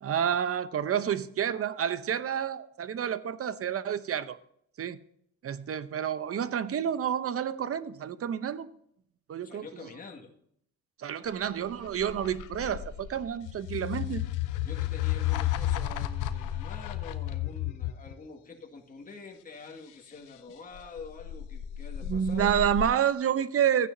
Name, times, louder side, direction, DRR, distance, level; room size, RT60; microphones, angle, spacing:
voice 1, 0.0-4.4 4.8-5.0 5.4-8.7 9.3-9.9 11.0-14.2 22.0-23.9, right 9 dB, 50° right, 0.8 m, -29 dB
voice 2, 9.4-10.3 14.6-22.5, left 4 dB, 30° left, 2.0 m, -46 dB
sound 1, 11.4-18.1 20.7-22.8, left 12 dB, 90° left, 0.9 m, -32 dB
14.5 x 9.7 x 2.7 m
cardioid pair, 90°, 30 cm